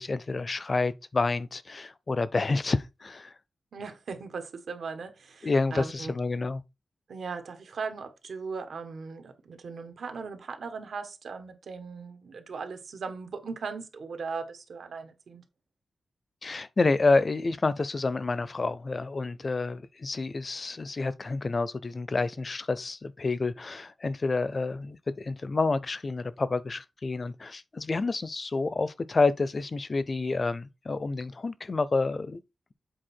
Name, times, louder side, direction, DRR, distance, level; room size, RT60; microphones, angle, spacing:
voice 1, 0.0-3.3 5.4-6.6 16.4-32.4, left 3 dB, 35° left, 0.5 m, -29 dB
voice 2, 3.7-6.1 7.1-15.4, right 5 dB, 85° right, 1.4 m, -38 dB
7.7 x 4.2 x 4.4 m
wide cardioid pair, 155°, 0 cm